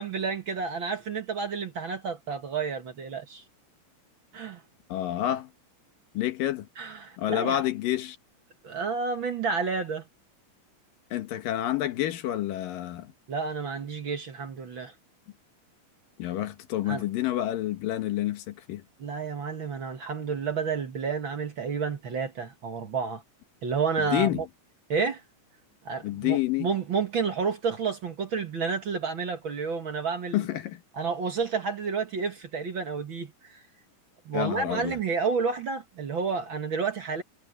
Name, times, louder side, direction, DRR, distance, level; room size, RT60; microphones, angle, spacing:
voice 1, 0.0-3.4 4.3-4.6 6.8-7.6 8.6-10.0 13.3-14.9 16.9-17.0 19.0-23.2 23.6-24.4 24.9-25.2 25.8-30.5 31.0-33.6 34.2-37.2, right 5 dB, 50° right, 1.7 m, -30 dB
voice 2, 4.9-5.5 6.1-6.7 7.2-8.2 11.1-13.1 16.2-18.8 24.1-24.5 26.0-26.7 30.3-30.8 34.3-35.0, left 13 dB, 85° left, 3.0 m, -28 dB
omnidirectional pair, 3.9 m